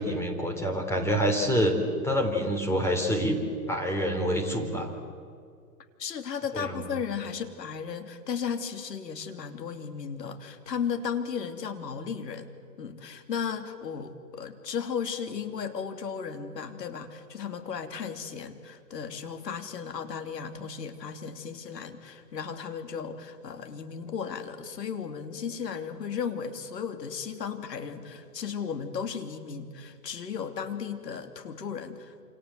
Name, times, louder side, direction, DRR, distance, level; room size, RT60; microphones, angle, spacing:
voice 1, 0.0-1.8 2.0-3.4 3.7-4.9 6.5-6.8, equal, 5° left, 2 dB, 3.6 m, -27 dB
voice 2, 6.0-32.2, left 7 dB, 80° left, 8 dB, 3.2 m, -35 dB
28.0 x 27.0 x 7.8 m, 2.2 s
hypercardioid pair, 140°, 48 cm